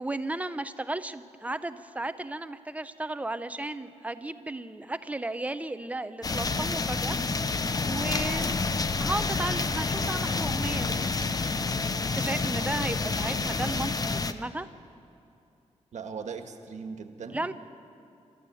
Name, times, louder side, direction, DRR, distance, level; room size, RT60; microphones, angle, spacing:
voice 1, 0.0-7.2 7.8-8.6 9.0-11.1 12.0-14.7 17.3-17.5, right 2 dB, 10° right, 11 dB, 0.7 m, -34 dB
sound 1, 6.2-14.3, left 4 dB, 30° left, 0.7 m, -28 dB
voice 2, 15.9-17.5, right 5 dB, 80° right, 6 dB, 1.6 m, -39 dB
28.0 x 14.0 x 7.8 m, 2.7 s
wide cardioid pair, 140°, 12 cm